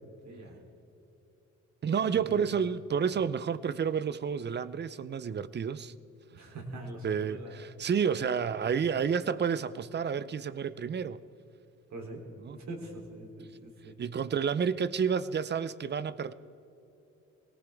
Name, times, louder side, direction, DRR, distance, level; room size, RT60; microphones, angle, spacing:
voice 1, 0.2-0.6 2.1-2.4 6.3-7.6 11.9-14.0, right 1 dB, 65° right, 3.3 m, -43 dB
voice 2, 1.8-5.9 7.0-11.2 12.4-12.6 14.0-16.3, right 7 dB, 35° right, 0.6 m, -30 dB
20.0 x 18.0 x 3.5 m
cardioid pair, 90°, 30 cm